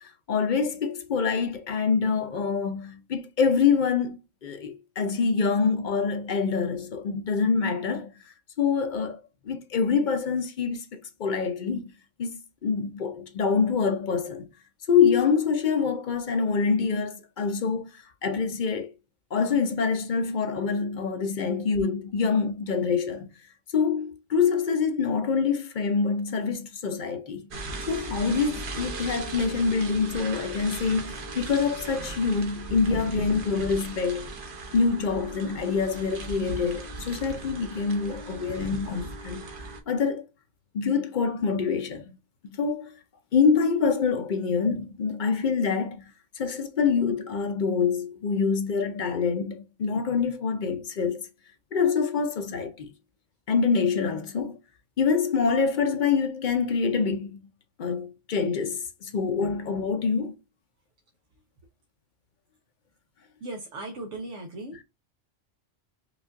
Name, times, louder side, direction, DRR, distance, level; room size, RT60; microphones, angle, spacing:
voice 1, 0.0-8.1 8.6-9.2 9.5-11.9 12.2-12.3 12.6-14.5 14.9-18.9 19.3-23.3 23.7-27.5 27.9-34.3 34.7-39.5 39.9-40.2 40.7-42.2 42.4-42.9 43.3-51.3 51.7-52.9 53.5-54.6 55.0-57.5 57.8-60.3, left 5 dB, 55° left, 0.6 m, -26 dB
sound 1, 27.5-39.8, right 2 dB, 50° right, 0.9 m, -37 dB
voice 2, 63.4-64.8, right 2 dB, 90° right, 1.1 m, -37 dB
5.0 x 2.4 x 2.4 m
omnidirectional pair, 1.2 m